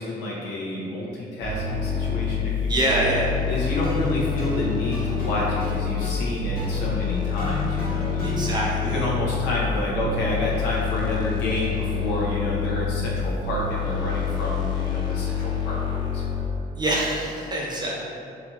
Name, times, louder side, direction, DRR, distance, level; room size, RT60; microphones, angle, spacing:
voice 1, 0.0-3.0 3.5-8.5 8.8-16.5, left 1 dB, 85° left, -5 dB, 0.9 m, -29 dB
sound 1, 1.4-16.4, left 6 dB, 25° left, 0.7 m, -27 dB
voice 2, 2.7-3.3 8.2-9.1 16.8-17.9, right 1 dB, 25° right, -4 dB, 0.8 m, -25 dB
sound 2, 3.6-8.6, right 1 dB, 60° left, 1.2 m, -36 dB
4.0 x 3.1 x 2.9 m, 2.6 s
cardioid pair, 110°, 17 cm